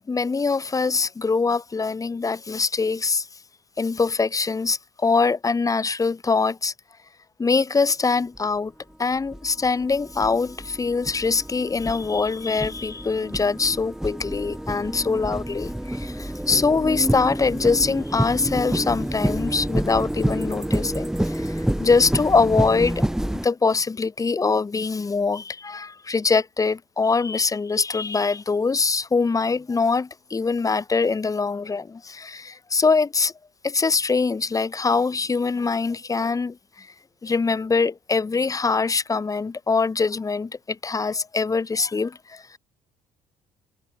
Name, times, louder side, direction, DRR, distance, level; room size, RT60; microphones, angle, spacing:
voice 1, 0.1-3.3 3.8-6.7 7.4-8.7 9.0-23.0 23.4-33.3 33.6-36.9 37.2-42.4, left 4 dB, 25° left, 1.3 m, -23 dB
sound 1, 8.4-8.5 9.2-23.5, right 1 dB, 5° right, 0.9 m, -28 dB
supercardioid pair, 70°, 13 cm